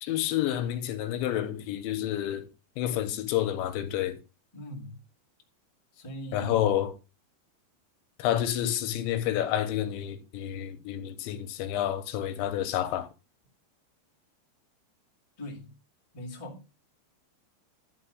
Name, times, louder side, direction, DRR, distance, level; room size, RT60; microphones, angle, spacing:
voice 1, 0.0-2.5 2.8-4.2 6.3-6.9 8.2-13.1, left 11 dB, 90° left, 3.3 m, -29 dB
voice 2, 4.5-5.0 5.9-6.7 15.4-15.8 16.1-16.7, equal, 20° left, 0.8 m, -41 dB
11.5 x 4.2 x 6.6 m
omnidirectional pair, 5.2 m